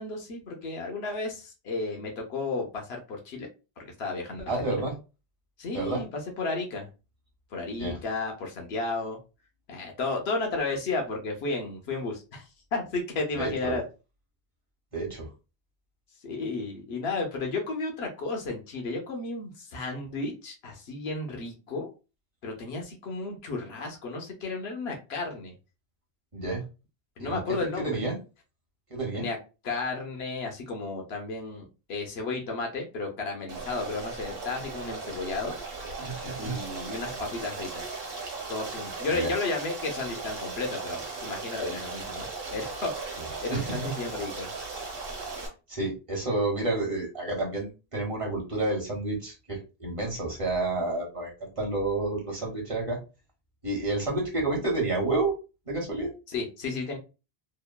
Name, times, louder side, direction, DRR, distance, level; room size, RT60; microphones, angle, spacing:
voice 1, 0.0-3.5 3.8-4.8 5.6-6.9 7.5-9.2 9.7-13.8 16.2-21.9 22.4-25.5 27.2-28.0 29.1-29.4 29.6-35.5 36.4-37.9 38.5-42.2 42.5-44.5 56.3-57.0, left 3 dB, 80° left, 2 dB, 0.9 m, -33 dB
voice 2, 4.5-5.0 5.7-6.0 7.8-8.0 13.3-13.8 14.9-15.3 26.3-26.6 27.2-27.6 27.8-28.2 28.9-29.3 36.0-36.6 39.1-39.3 43.5-43.9 45.7-53.0 53.6-55.3 55.7-56.1, right 2 dB, 35° right, -1 dB, 0.9 m, -30 dB
Stream, 33.5-45.5, right 4 dB, 70° right, 1.1 m, -37 dB
3.0 x 2.1 x 2.2 m, 0.30 s
omnidirectional pair, 1.0 m